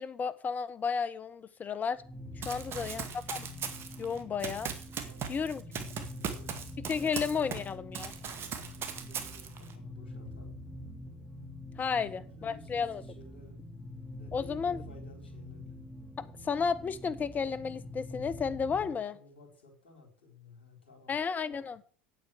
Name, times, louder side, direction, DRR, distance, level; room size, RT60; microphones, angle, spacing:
voice 1, 0.0-2.0 2.4-3.1 3.3-3.5 4.0-4.7 5.3-5.6 6.8-8.1 11.8-13.0 14.3-14.8 16.2-19.1 21.1-21.8, left 6 dB, 30° left, 14 dB, 1.3 m, -33 dB
sound 1, 1.9-19.0, left 1 dB, 10° left, 3.9 m, -46 dB
voice 2, 2.4-3.1 5.0-6.6 7.3-7.5 8.1-10.6 11.8-13.6 14.1-15.8 18.7-21.1, left 4 dB, 90° left, 2 dB, 4.3 m, -54 dB
Run, 2.4-7.7 7.9-9.7, right 7 dB, 45° right, 2.2 m, -39 dB
8.8 x 8.8 x 8.0 m, 0.43 s
hypercardioid pair, 80°, 6 cm